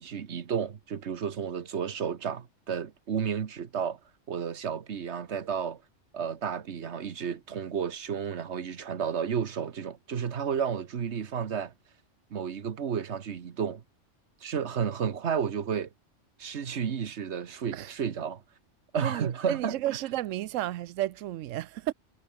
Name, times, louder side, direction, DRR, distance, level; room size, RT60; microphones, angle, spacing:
voice 1, 0.0-4.0 4.3-5.8 6.1-11.7 12.3-13.8 14.4-15.9 16.4-18.4 18.9-19.8, right 7 dB, 65° right, 1.4 m, -32 dB
voice 2, 19.0-21.9, right 14 dB, 85° right, 1.0 m, -32 dB
omnidirectional pair, 1.3 m